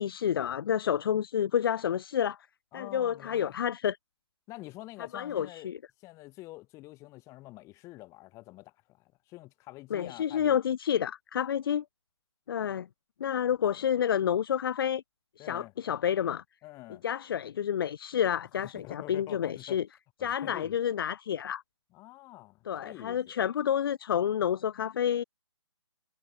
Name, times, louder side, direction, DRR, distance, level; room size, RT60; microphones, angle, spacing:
voice 1, 0.0-2.4 2.7-4.0 5.1-5.8 9.9-11.8 12.5-12.9 13.2-15.0 15.4-16.4 17.0-19.8 20.2-21.6 22.7-25.2, left 9 dB, 50° left, 0.6 m, -29 dB
voice 2, 2.7-3.6 4.5-5.7 6.0-10.6 15.4-15.7 16.6-17.0 18.6-19.8 20.2-20.7 21.9-23.2, left 19 dB, 20° left, 2.8 m, -47 dB
figure-of-eight pair, 145°, 15 cm